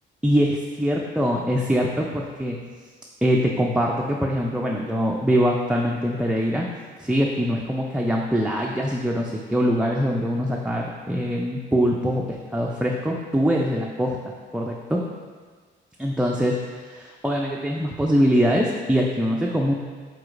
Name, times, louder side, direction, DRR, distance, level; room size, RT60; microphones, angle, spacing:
voice 1, 0.2-2.6 3.2-6.7 7.0-14.2 14.5-15.0 16.0-19.7, equal, 5° right, -2 dB, 0.3 m, -23 dB
4.7 x 4.1 x 2.4 m, 1.5 s
cardioid pair, 90°, 20 cm